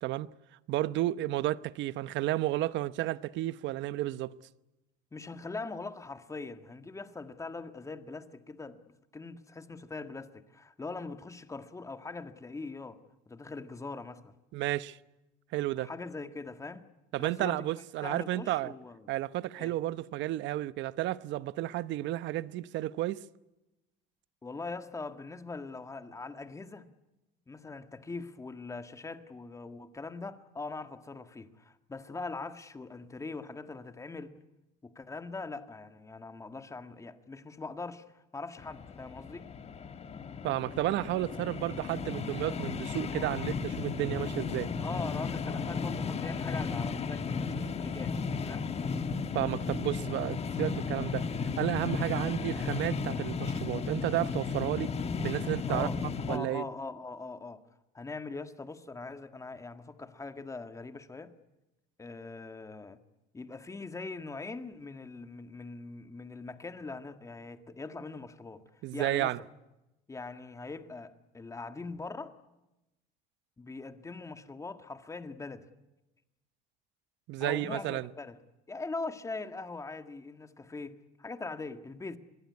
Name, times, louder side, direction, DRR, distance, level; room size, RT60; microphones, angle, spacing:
voice 1, 0.7-4.4 14.5-15.0 15.5-15.9 17.1-18.7 19.1-23.2 40.4-44.7 49.3-51.3 51.6-54.9 55.2-55.9 56.3-56.7 68.8-69.4 77.3-78.1, right 15 dB, 60° right, 1.0 m, -32 dB
voice 2, 5.1-8.8 9.1-13.0 13.2-14.3 15.8-16.9 17.2-17.6 18.0-19.1 19.6-19.7 24.4-26.9 27.5-34.3 34.8-39.5 44.8-48.7 55.7-56.0 56.3-57.6 57.9-61.3 62.0-63.0 63.3-68.6 68.9-69.3 70.1-72.3 73.6-75.7 77.4-78.4 78.7-82.2, left 3 dB, 15° left, 1.7 m, -42 dB
sound 1, 38.6-56.4, left 5 dB, 30° left, 1.5 m, -34 dB
25.5 x 21.5 x 9.7 m
cardioid pair, 130°, 21 cm